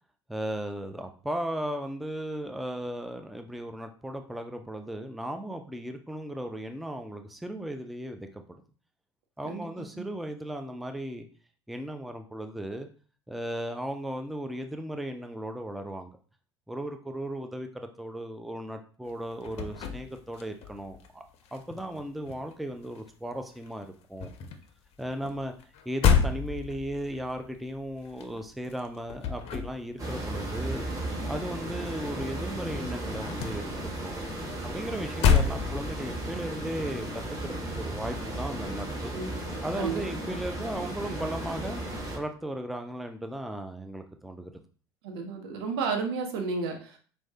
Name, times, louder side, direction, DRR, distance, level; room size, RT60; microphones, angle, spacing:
voice 1, 0.3-8.6 9.4-11.3 11.7-12.9 13.3-16.1 16.7-21.2 21.5-24.3 25.0-25.5 25.9-30.8 31.3-34.2 34.6-39.1 39.6-41.8 42.1-44.6, right 1 dB, ahead, 6 dB, 0.4 m, -36 dB
sound 1, 19.1-21.1 21.3-23.3 23.6-32.2 32.5-36.2, left 6 dB, 50° left, 0.5 m, -30 dB
sound 2, 30.0-42.2, right 1 dB, 25° right, 1.2 m, -35 dB
voice 2, 45.0-47.0, right 4 dB, 65° right, 4 dB, 0.8 m, -32 dB
4.5 x 2.2 x 2.7 m, 0.41 s
figure-of-eight pair, 70°, 14 cm